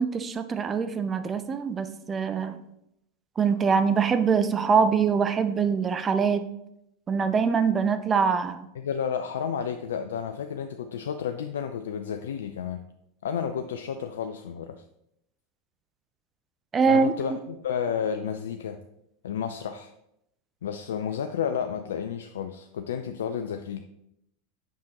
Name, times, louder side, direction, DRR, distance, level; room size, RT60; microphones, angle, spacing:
voice 1, 0.0-2.6 3.4-6.4 7.1-8.7 16.7-17.1, right 6 dB, 25° right, 9 dB, 0.6 m, -23 dB
voice 2, 8.8-12.8 13.2-14.8 16.9-18.8 19.2-19.9 20.6-23.8, left 7 dB, 75° left, 7 dB, 0.4 m, -31 dB
7.4 x 5.9 x 2.9 m, 0.80 s
hypercardioid pair, 90°, 0 cm